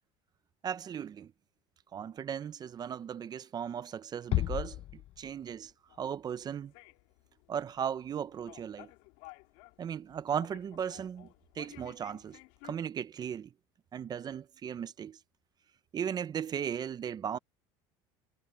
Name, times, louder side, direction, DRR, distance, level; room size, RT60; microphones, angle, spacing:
voice 1, 0.6-1.3 1.9-5.7 6.0-6.7 7.5-8.9 9.8-11.3 11.6-13.5 13.9-15.2 15.9-17.4, right 8 dB, 35° right, 0.7 m, -37 dB
Bass drum, 4.3-5.7, left 16 dB, 50° left, 0.7 m, -33 dB
sound 1, 5.9-12.8, left 24 dB, 75° left, 2.5 m, -55 dB
supercardioid pair, 110°, 12 cm